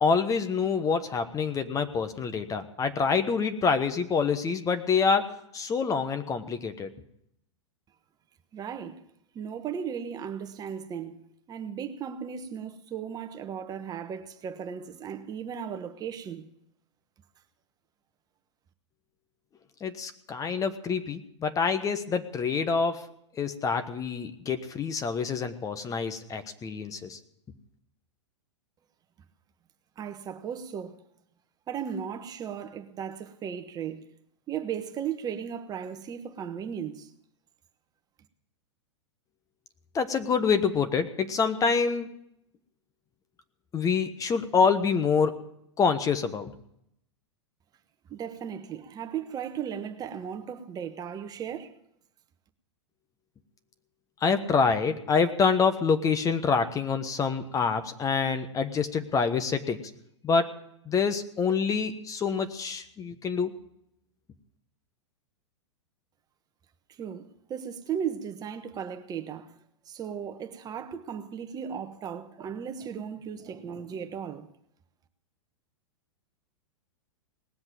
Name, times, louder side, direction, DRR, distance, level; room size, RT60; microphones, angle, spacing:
voice 1, 0.0-6.9 19.8-23.0 23.4-27.2 39.9-42.1 43.7-45.4 45.8-46.5 54.2-59.8 60.2-60.5 60.9-63.5, left 5 dB, 20° left, 1.2 m, -26 dB
voice 2, 8.5-9.0 9.3-11.2 11.5-16.4 30.0-31.0 31.7-34.1 34.5-37.1 48.1-51.7 66.9-69.6 69.9-74.5, right 8 dB, 25° right, 1.2 m, -36 dB
19.0 x 7.9 x 9.0 m
hypercardioid pair, 105°, 15 cm